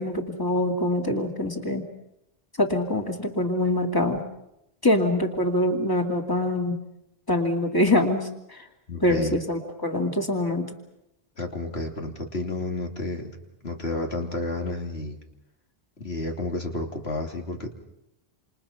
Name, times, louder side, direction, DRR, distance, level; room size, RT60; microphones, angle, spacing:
voice 1, 0.0-1.8 2.6-4.2 4.8-6.8 7.3-8.7 9.0-10.6, left 1 dB, 20° left, 3 dB, 2.7 m, -24 dB
voice 2, 8.9-9.3 11.4-13.3 13.6-15.2 16.0-17.7, left 2 dB, 80° left, 3 dB, 3.2 m, -31 dB
28.0 x 28.0 x 5.9 m, 0.85 s
omnidirectional pair, 1.0 m